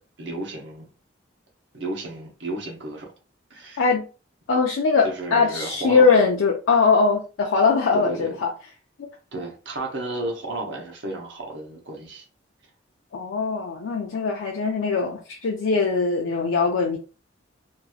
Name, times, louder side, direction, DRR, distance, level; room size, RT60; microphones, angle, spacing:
voice 1, 0.2-0.9 1.7-3.1 3.5-3.8 5.0-6.2 7.9-8.4 9.3-12.3, right 2 dB, 65° right, 0.9 m, -32 dB
voice 2, 4.5-8.5 9.0-9.1 13.1-17.0, left 4 dB, 80° left, 0.5 m, -21 dB
2.8 x 2.6 x 2.4 m
head